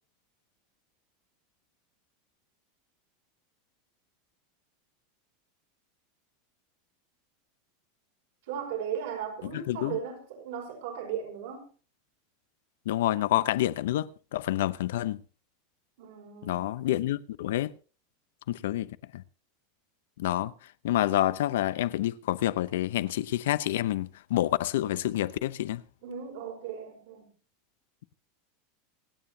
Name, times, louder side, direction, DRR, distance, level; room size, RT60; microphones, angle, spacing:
voice 1, 8.5-11.7 16.0-16.6 26.0-27.3, right 8 dB, 60° right, 5.1 m, -37 dB
voice 2, 9.5-10.0 12.9-15.2 16.4-17.7 18.5-19.2 20.2-20.5 20.8-25.8, left 14 dB, 75° left, 0.7 m, -28 dB
26.5 x 9.2 x 2.8 m
supercardioid pair, 175°, 0 cm